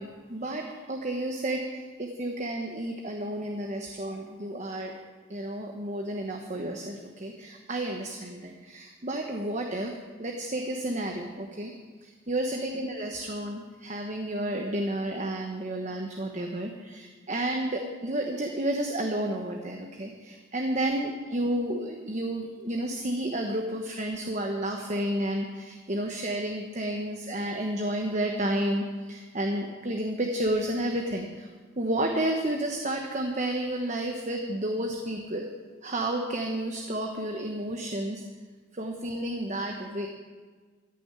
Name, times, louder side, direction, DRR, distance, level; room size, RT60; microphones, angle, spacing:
voice 1, 0.0-4.9 5.3-11.7 12.0-31.5 31.8-35.5 35.8-38.2 38.7-40.1, right 1 dB, 35° right, 3 dB, 1.1 m, -31 dB
14.5 x 7.0 x 9.7 m, 1.5 s
head